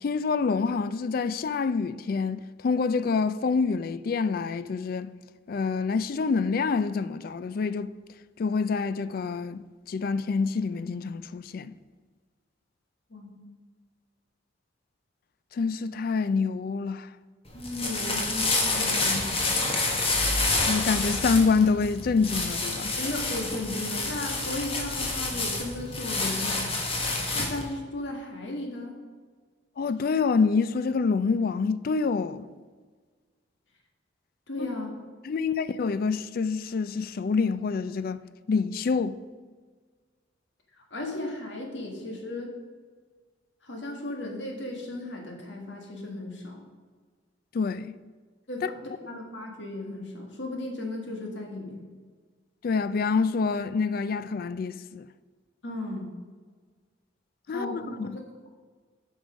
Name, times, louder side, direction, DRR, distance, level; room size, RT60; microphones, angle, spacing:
voice 1, 0.0-5.1 5.5-7.9 8.4-11.7 15.5-17.1 20.7-22.9 29.8-32.5 34.6-34.7 35.2-38.2 38.5-39.2 47.5-48.0 48.6-48.7 52.6-55.0 57.5-58.2, left 4 dB, 50° left, 0.3 m, -27 dB
voice 2, 17.5-19.4 23.0-26.8 27.3-28.9 34.5-35.0 40.8-42.5 43.6-46.6 48.5-48.6 49.1-51.8 55.6-56.1 57.5-58.5, left 2 dB, 75° left, 1.7 m, -35 dB
sound 1, 17.5-27.7, left 2 dB, 30° left, 1.3 m, -28 dB
8.9 x 5.5 x 5.0 m
head